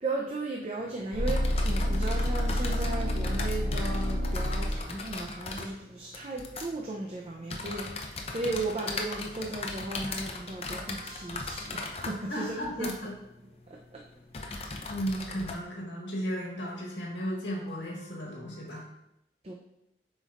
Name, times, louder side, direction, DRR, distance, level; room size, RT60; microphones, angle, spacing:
voice 1, 0.0-12.9 19.4-19.5, right 2 dB, 35° right, -1 dB, 0.6 m, -36 dB
sound 1, 0.8-15.5, left 3 dB, 35° left, 0.6 m, -39 dB
sound 2, 1.1-5.2 10.7-12.2 12.5-12.6 18.7-18.8, equal, 60° right, 2.2 m, -29 dB
voice 2, 12.3-13.2 14.4-18.8, equal, 85° left, -3 dB, 1.6 m, -35 dB
8.1 x 5.2 x 2.5 m, 0.85 s
head